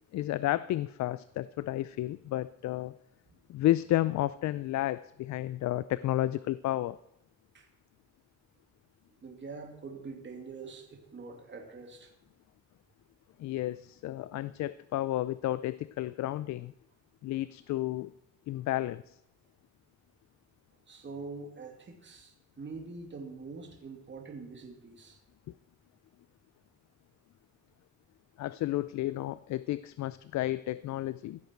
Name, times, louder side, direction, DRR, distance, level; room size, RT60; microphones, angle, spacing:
voice 1, 0.1-2.9 3.5-7.0 13.4-16.7 17.2-18.1 18.5-19.2 28.4-31.4, left 14 dB, 65° left, 16 dB, 0.5 m, -32 dB
voice 2, 9.2-12.1 20.9-25.2, right 4 dB, 40° right, 2 dB, 2.6 m, -44 dB
15.5 x 8.2 x 4.6 m, 0.80 s
cardioid pair, 90°, 30 cm